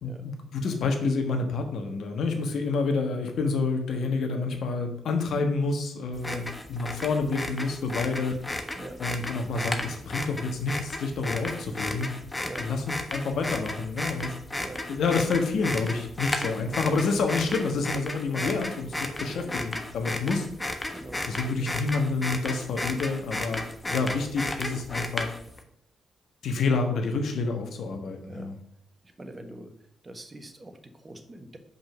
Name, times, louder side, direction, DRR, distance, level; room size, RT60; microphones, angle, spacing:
voice 1, 0.0-8.4 9.0-12.1 12.6-14.3 14.9-20.5 21.3-23.6 23.9-25.3 26.4-28.5, left 4 dB, 65° left, 5 dB, 1.3 m, -28 dB
sound 1, 6.1-25.6, left 1 dB, 20° left, 1.2 m, -34 dB
voice 2, 19.2-19.5 20.9-21.3 21.6-21.8 28.3-28.5 29.2-29.7 30.0-31.6, right 1 dB, 30° right, 7 dB, 1.3 m, -43 dB
5.5 x 5.2 x 6.4 m, 0.71 s
hypercardioid pair, 40°, 0 cm